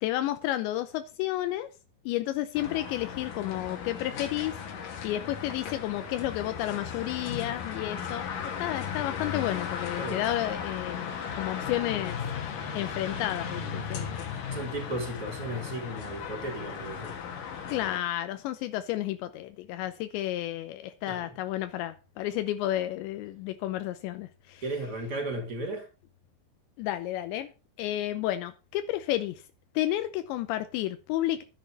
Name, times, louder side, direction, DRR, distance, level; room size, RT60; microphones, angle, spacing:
voice 1, 0.0-1.7 2.1-4.6 5.0-11.1 11.4-14.3 17.7-24.6 26.8-27.5 27.8-29.4 29.7-31.4, left 14 dB, 85° left, 3.0 m, -31 dB
sound 1, 2.5-18.0, left 7 dB, 60° left, 2.8 m, -36 dB
voice 2, 14.5-17.2 21.1-21.4 24.6-25.9, right 1 dB, 20° right, 4.1 m, -35 dB
11.5 x 10.0 x 5.3 m
omnidirectional pair, 5.1 m